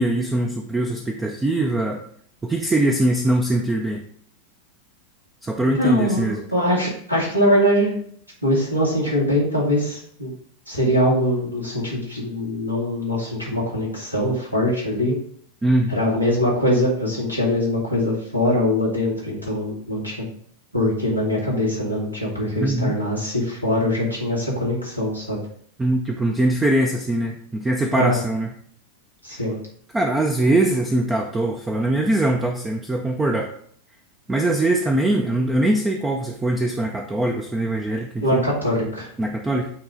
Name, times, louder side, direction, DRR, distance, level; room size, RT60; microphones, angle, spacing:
voice 1, 0.0-2.0 2.4-4.0 5.4-6.4 15.6-15.9 22.6-22.9 25.8-28.5 29.3-29.4 29.9-33.5 34.3-38.5 39.2-39.7, right 1 dB, 10° right, 2 dB, 0.6 m, -22 dB
voice 2, 5.7-8.0 8.4-10.3 10.7-15.2 15.9-20.3 20.7-25.4 27.9-28.2 29.2-29.6 38.2-39.1, left 1 dB, 90° right, -5 dB, 2.2 m, -22 dB
8.7 x 3.2 x 3.8 m, 0.62 s
figure-of-eight pair, 90°, 0 cm